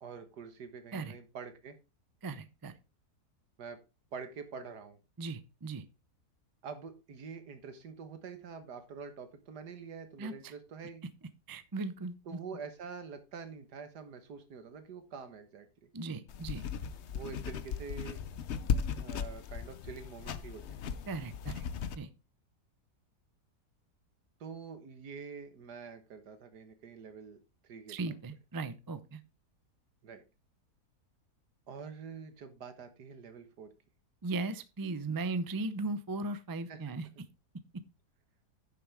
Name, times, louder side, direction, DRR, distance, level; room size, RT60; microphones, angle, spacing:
voice 1, 0.0-1.8 3.6-3.8 4.1-5.0 6.6-11.0 12.3-15.7 17.1-18.2 18.9-20.9 24.4-27.4 27.6-28.0 30.0-30.2 31.7-33.7 36.7-36.8, right 5 dB, 90° right, 9 dB, 2.0 m, -46 dB
voice 2, 2.2-2.8 5.2-5.8 10.2-10.5 11.5-12.4 15.9-16.6 21.1-21.6 22.0-22.1 27.9-29.2 34.2-37.1, right 3 dB, 35° right, 13 dB, 0.3 m, -37 dB
sound 1, 16.3-22.0, left 7 dB, 55° left, 0.8 m, -37 dB
9.6 x 7.1 x 3.5 m, 0.28 s
omnidirectional pair, 1.7 m